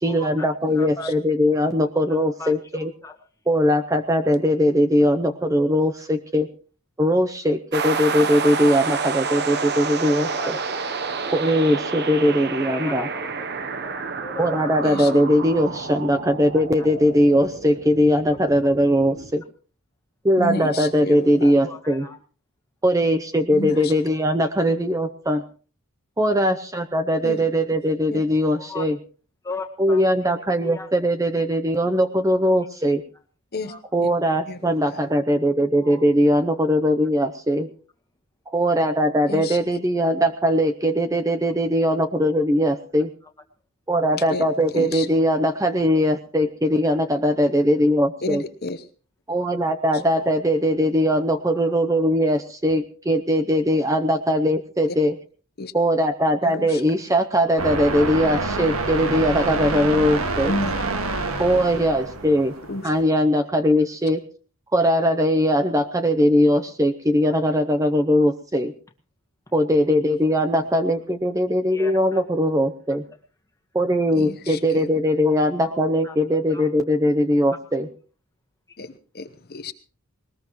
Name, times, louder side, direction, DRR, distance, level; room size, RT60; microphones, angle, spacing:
voice 1, 0.0-2.9 3.5-6.5 7.0-10.6 11.3-13.1 14.4-19.4 20.2-22.1 22.8-25.4 26.2-29.0 29.8-33.0 33.9-37.7 38.5-43.1 43.9-48.4 49.3-55.2 55.7-60.5 61.4-62.5 62.8-64.2 64.7-68.7 69.5-73.0 73.7-77.9, equal, 15° right, 8 dB, 0.7 m, -20 dB
voice 2, 0.8-1.1 2.1-3.1 10.4-10.5 12.6-13.5 13.8-14.6 15.0-15.1 16.8-16.9 21.5-22.2 28.6-28.9 29.4-30.0 30.6-31.1 33.6-33.8 35.8-36.1 50.0-50.1 51.5-51.6 71.7-72.2 75.6-76.2 76.5-76.7, left 3 dB, 15° left, 3 dB, 1.9 m, -38 dB
sound 1, 7.7-19.3, right 4 dB, 45° right, 0.9 m, -29 dB
voice 3, 20.4-21.5 23.5-23.9 27.2-27.4 28.1-28.2 33.5-33.7 34.0-34.1 34.5-34.7 39.3-39.6 44.3-44.5 44.7-45.1 48.2-48.9 55.6-55.7 56.4-56.8 60.5-60.7 61.5-61.6 62.7-62.9 74.1-74.9 78.8-79.7, left 2 dB, 45° left, 10 dB, 0.9 m, -31 dB
sound 2, 57.6-63.0, right 3 dB, 70° right, 1.9 m, -27 dB
20.0 x 20.0 x 3.1 m, 0.39 s
head